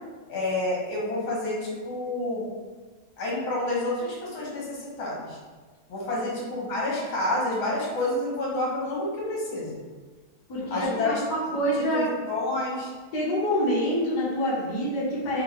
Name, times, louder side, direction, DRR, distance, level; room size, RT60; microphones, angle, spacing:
voice 1, 0.3-2.5 3.2-5.4 5.9-9.7 10.7-11.2 11.8-12.9, left 2 dB, 75° left, -4 dB, 2.0 m, -29 dB
voice 2, 10.5-12.0 13.1-15.4, equal, 55° left, -8 dB, 1.6 m, -26 dB
5.2 x 2.7 x 3.2 m, 1.4 s
omnidirectional pair, 2.2 m